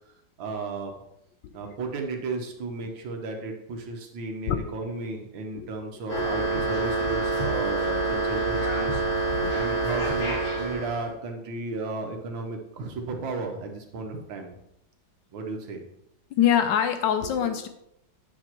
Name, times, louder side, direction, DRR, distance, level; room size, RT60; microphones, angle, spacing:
voice 1, 0.4-0.9 1.5-14.5 15.3-15.8, right 3 dB, 90° right, 3 dB, 1.8 m, -34 dB
sound 1, 6.1-11.1, right 2 dB, 50° left, 3.2 m, -26 dB
voice 2, 16.3-17.7, left 9 dB, 75° left, 9 dB, 1.2 m, -24 dB
8.8 x 6.9 x 3.0 m, 0.78 s
omnidirectional pair, 2.1 m